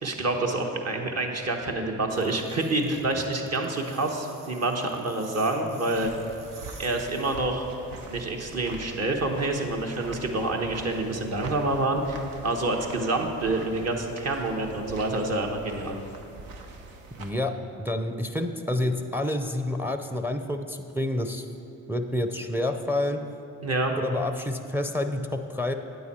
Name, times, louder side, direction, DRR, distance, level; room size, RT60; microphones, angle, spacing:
voice 1, 0.0-6.1 6.8-7.7 8.1-15.9 23.6-23.9, right 2 dB, 50° right, 2 dB, 1.2 m, -27 dB
sound 1, 2.1-7.4, right 3 dB, 70° right, 1.5 m, -50 dB
sound 2, 5.9-17.3, right 3 dB, 90° right, 0.8 m, -44 dB
voice 2, 17.2-17.5 17.8-21.4 21.9-23.2 24.0-25.7, left 1 dB, 5° right, 7 dB, 0.5 m, -28 dB
9.4 x 8.2 x 4.3 m, 2.8 s
cardioid pair, 75°, 34 cm